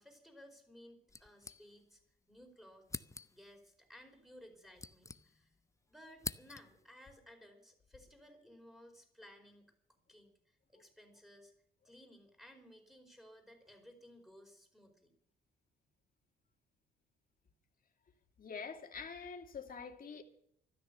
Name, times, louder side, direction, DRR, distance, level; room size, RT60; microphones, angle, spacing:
voice 1, 0.0-2.0 2.3-3.0 3.3-5.5 5.9-11.5 11.8-15.1, equal, ahead, 4.6 m, -58 dB
sound 1, 1.1-2.1 2.4-2.5 2.9-3.6 4.4-5.7 5.9-6.9, left 3 dB, 15° left, 0.6 m, -47 dB
voice 2, 18.4-20.2, left 5 dB, 45° left, 2.5 m, -46 dB
13.5 x 12.5 x 6.8 m
cardioid pair, 90°, 20 cm